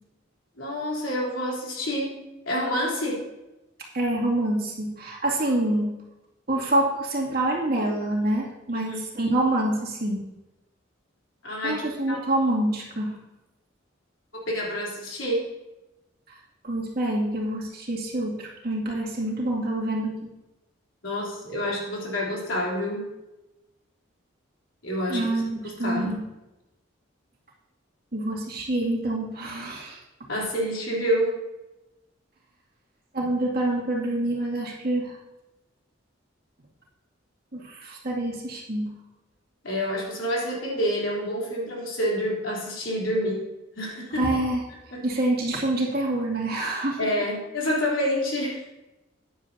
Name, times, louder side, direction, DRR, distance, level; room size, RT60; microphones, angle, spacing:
voice 1, 0.6-2.2 2.5-3.2 8.7-9.0 11.4-12.3 14.5-15.5 21.0-23.1 24.8-26.2 30.3-31.4 39.6-43.5 43.8-44.2 44.9-45.1 47.0-48.7, equal, 75° left, -4 dB, 3.5 m, -28 dB
voice 2, 3.9-5.9 6.5-10.2 11.6-13.2 16.3-16.4 16.6-20.3 25.1-26.2 28.1-30.0 33.1-35.2 37.5-38.9 44.2-44.6 45.0-47.1, right 1 dB, 50° right, -3 dB, 2.5 m, -26 dB
14.0 x 10.0 x 2.8 m, 0.99 s
head